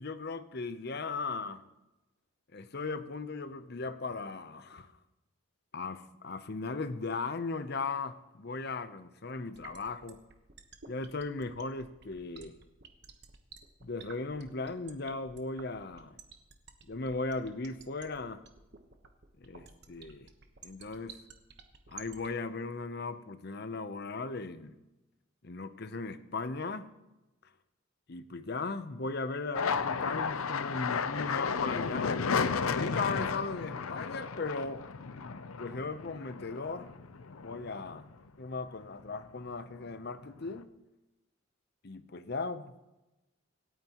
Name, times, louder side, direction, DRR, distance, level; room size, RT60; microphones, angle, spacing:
voice 1, 0.0-1.6 2.5-4.9 5.7-10.2 10.9-12.6 13.8-16.2 16.9-18.5 19.4-20.3 20.6-21.2 21.9-24.8 25.4-26.9 28.1-32.2 32.6-34.9 35.6-36.9 37.4-38.1 38.4-40.7 41.8-42.8, left 3 dB, 50° left, 0.7 m, -37 dB
sound 1, 9.5-22.3, right 6 dB, 55° right, 1.1 m, -51 dB
sound 2, 29.5-38.3 38.7-39.4 39.7-40.6, left 5 dB, 90° left, 0.7 m, -34 dB
25.5 x 9.2 x 3.0 m
head